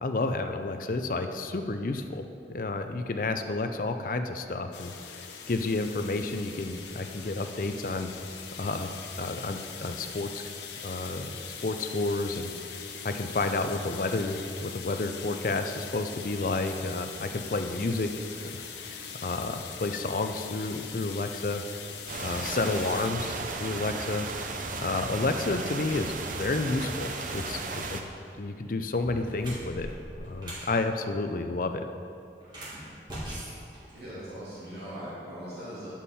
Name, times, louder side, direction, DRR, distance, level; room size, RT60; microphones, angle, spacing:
voice 1, 0.0-2.3 2.5-8.1 8.6-8.9 9.2-10.4 10.8-12.5 12.8-18.2 18.5-21.6 22.2-24.3 24.8-28.0 28.4-29.9 30.2-31.8, left 2 dB, 50° left, 7 dB, 0.5 m, -31 dB
sound 1, 4.7-23.1, left 6 dB, 85° left, 0.9 m, -42 dB
sound 2, 22.1-28.0, right 3 dB, 45° right, 0.6 m, -35 dB
sound 3, 28.2-28.4 28.9-30.7 32.4-34.5, right 1 dB, 25° right, 1.8 m, -41 dB
voice 2, 33.9-35.9, equal, 70° right, -10 dB, 2.2 m, -40 dB
10.0 x 7.3 x 4.2 m, 2.6 s
head